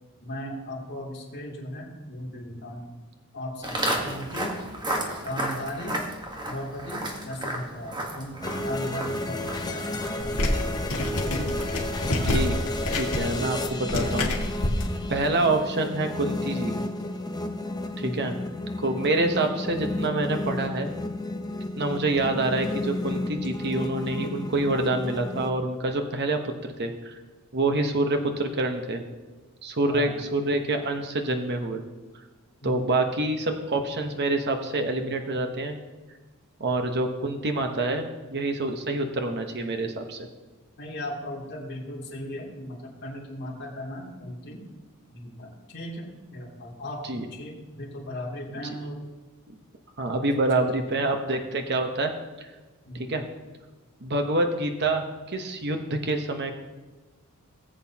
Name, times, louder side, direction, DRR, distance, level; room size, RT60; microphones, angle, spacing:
voice 1, 0.2-2.9 3.3-4.6 5.2-6.1 6.5-10.3 18.0-18.4 29.9-30.2 32.6-32.9 40.8-44.6 45.1-49.0 50.0-51.1 52.8-53.1, left 1 dB, 50° left, -3 dB, 2.9 m, -37 dB
Walk footsteps, 3.6-12.8, right 1 dB, 20° right, 1.4 m, -34 dB
sound 1, 8.4-25.5, left 1 dB, 20° left, 0.8 m, -32 dB
sound 2, 10.2-14.8, left 1 dB, 70° left, 1.9 m, -28 dB
voice 2, 12.1-12.6 13.0-14.3 15.1-16.7 18.0-18.4 18.8-20.9 21.8-27.2 27.5-29.0 29.6-31.8 32.6-35.8 36.6-40.3 47.1-47.3 48.6-48.7 49.5-49.6 50.0-52.1 53.1-53.2 54.0-56.5, right 2 dB, 50° right, 5 dB, 1.0 m, -27 dB
18.5 x 8.0 x 2.9 m, 1.3 s
head